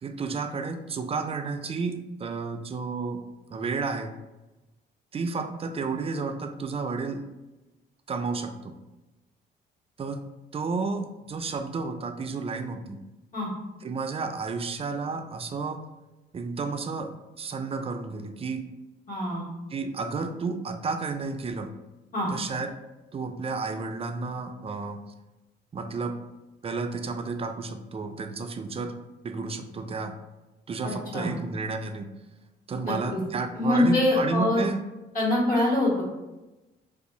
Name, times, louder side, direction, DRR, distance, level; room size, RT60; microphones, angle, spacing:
voice 1, 0.0-3.2 3.5-4.1 5.1-7.2 8.1-8.7 10.0-10.2 10.5-13.0 13.8-15.8 16.3-17.1 17.4-18.6 19.7-21.7 22.3-22.7 23.1-25.0 25.7-26.1 26.6-28.9 29.2-30.1 30.7-32.1 32.7-34.8, right 4 dB, 30° right, 7 dB, 0.3 m, -31 dB
voice 2, 19.1-19.4 22.1-22.3 30.8-31.3 32.8-33.2 33.6-34.6 35.1-36.1, left 1 dB, 45° left, -4 dB, 1.5 m, -24 dB
2.6 x 2.4 x 4.1 m, 1.0 s
cardioid pair, 90°, 20 cm